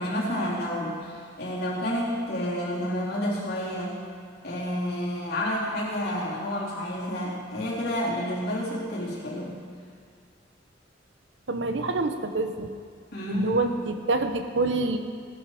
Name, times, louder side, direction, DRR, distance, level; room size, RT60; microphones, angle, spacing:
voice 1, 0.0-4.0 4.4-9.6 13.1-13.6, equal, 60° left, -6 dB, 3.9 m, -30 dB
voice 2, 11.5-12.7 13.3-15.0, right 2 dB, 75° right, 7 dB, 1.0 m, -26 dB
17.0 x 11.0 x 5.0 m, 2.1 s
head